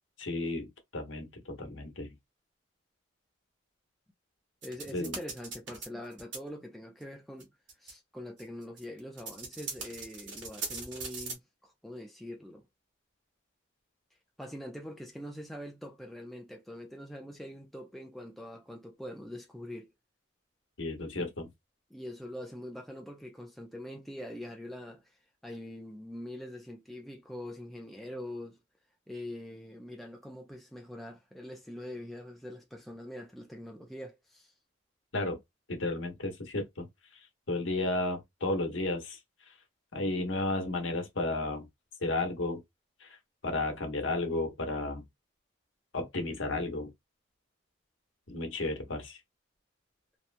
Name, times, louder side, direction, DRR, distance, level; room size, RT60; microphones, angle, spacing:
voice 1, 0.2-2.1 4.9-5.2 20.8-21.5 35.1-35.4 35.7-36.9 37.1-39.2 39.9-41.7 42.0-42.6 43.0-43.2 43.4-45.0 45.9-46.9 48.3-49.2, left 2 dB, 80° left, 1.0 m, -33 dB
voice 2, 4.6-7.5 7.8-12.6 14.4-19.9 21.2-21.3 21.9-25.0 25.4-28.6 29.1-34.5, left 1 dB, ahead, 0.4 m, -43 dB
sound 1, 4.6-5.9 6.1-6.4 7.0-7.1 7.4-7.5 7.7-7.9 8.4-11.3, right 4 dB, 65° right, 1.1 m, -40 dB
2.9 x 2.2 x 2.5 m
head